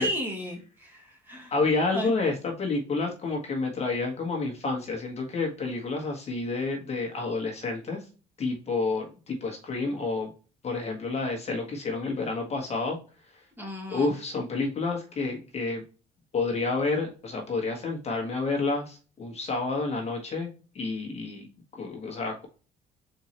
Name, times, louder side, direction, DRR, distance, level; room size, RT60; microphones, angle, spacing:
voice 1, 0.0-1.5 1.9-2.1 13.6-14.1, equal, 10° right, 0 dB, 1.7 m, -34 dB
voice 2, 1.5-8.0 8.4-10.3 10.6-13.0 13.9-15.8 16.3-21.5 21.7-22.5, left 3 dB, 40° left, 0 dB, 1.3 m, -29 dB
4.2 x 3.6 x 3.0 m, 0.35 s
cardioid pair, 110°, 17 cm